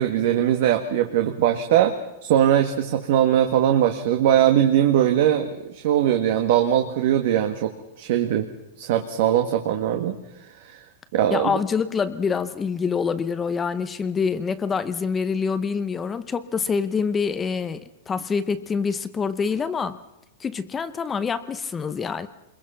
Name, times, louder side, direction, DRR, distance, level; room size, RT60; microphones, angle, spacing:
voice 1, 0.0-1.9 2.2-7.7 8.0-8.5 8.8-10.2 10.6-10.8 11.1-11.6, right 11 dB, 55° right, 6 dB, 1.7 m, -20 dB
voice 2, 11.3-20.0 20.4-22.3, left 5 dB, 15° left, 12 dB, 0.8 m, -26 dB
27.0 x 22.0 x 5.8 m, 0.90 s
supercardioid pair, 165°, 0 cm